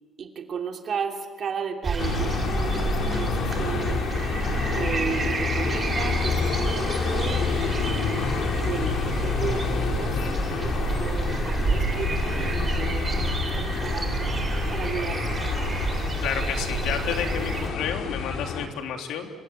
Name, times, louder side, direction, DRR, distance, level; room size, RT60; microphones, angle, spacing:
voice 1, 0.2-10.2 10.4-14.1 14.7-15.4 15.9-16.1, right 6 dB, 40° right, 4 dB, 2.8 m, -34 dB
sound 1, 1.8-17.7, right 3 dB, 25° right, 3.3 m, -29 dB
sound 2, 2.0-18.7, left 6 dB, 55° left, 2.7 m, -29 dB
voice 2, 16.2-19.3, left 7 dB, 85° left, 4 dB, 3.3 m, -30 dB
27.0 x 24.5 x 9.0 m, 1.5 s
cardioid pair, 175°, 0 cm